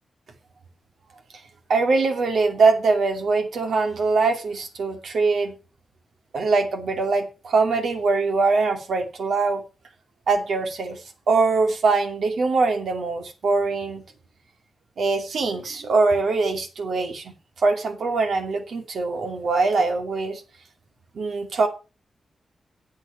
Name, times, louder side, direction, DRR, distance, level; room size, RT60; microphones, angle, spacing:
voice 1, 1.7-5.5 6.3-9.6 10.3-11.0 11.3-14.0 15.0-20.4 21.1-21.7, right 3 dB, 75° right, 5 dB, 2.5 m, -22 dB
8.2 x 8.0 x 7.1 m, 0.33 s
cardioid pair, 70°, 0 cm